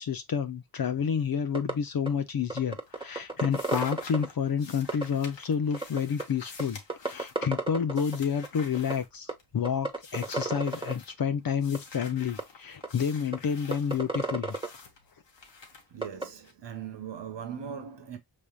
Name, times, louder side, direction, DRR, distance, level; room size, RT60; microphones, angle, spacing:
voice 1, 0.0-6.8 7.0-14.6, left 7 dB, 55° left, 0.7 m, -29 dB
sound 1, 1.5-1.7 2.1-2.2 2.5-4.3 4.9-5.0 5.7-6.2 6.6-6.7 6.9-8.2 8.4-8.5 8.7-8.9 9.3-9.4 9.6-10.9 11.7-11.8 12.4-12.5 12.8-12.9 13.3-13.4 13.7-14.7 16.0-16.2, right 3 dB, 10° right, 1.3 m, -30 dB
sound 2, 2.1-2.6 2.8-9.6 10.0-11.1 11.6-16.5, left 4 dB, 75° left, 1.3 m, -49 dB
voice 2, 15.9-18.2, right 8 dB, 75° right, 1.1 m, -39 dB
5.3 x 3.4 x 2.3 m
cardioid pair, 45°, 43 cm